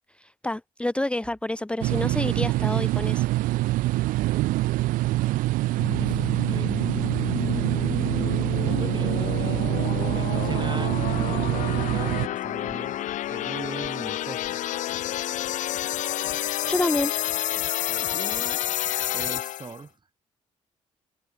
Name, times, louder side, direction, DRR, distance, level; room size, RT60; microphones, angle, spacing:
voice 1, 0.2-3.3 16.7-17.1, left 1 dB, 5° left, 1.0 m, -28 dB
sound 1, 1.8-12.3, right 18 dB, 60° right, 1.0 m, -25 dB
voice 2, 5.1-5.4 6.0-6.7 8.6-13.0 13.3-14.4 17.9-18.6 19.1-19.9, right 4 dB, 30° right, 3.5 m, -40 dB
sound 2, 5.8-19.8, left 13 dB, 50° left, 1.0 m, -30 dB
figure-of-eight pair, 45°, 16 cm